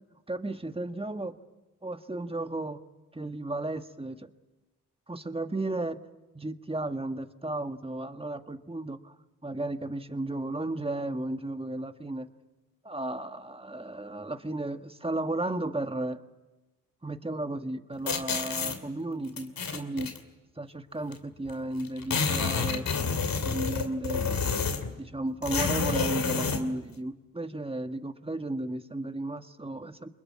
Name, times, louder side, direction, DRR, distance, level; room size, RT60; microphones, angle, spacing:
voice 1, 0.3-1.4 1.8-2.8 3.1-4.3 5.1-6.0 6.3-9.1 9.4-12.3 12.8-16.2 17.0-20.1 20.6-22.9 23.4-24.2 24.6-30.1, right 2 dB, 15° right, 8 dB, 1.7 m, -34 dB
sound 1, 18.1-18.8 19.4-20.2 21.1-21.2 21.5-21.6 21.8-24.9 25.4-26.6, left 5 dB, 80° left, 2.6 m, -29 dB
25.0 x 21.5 x 9.6 m, 1.1 s
cardioid pair, 45°, 34 cm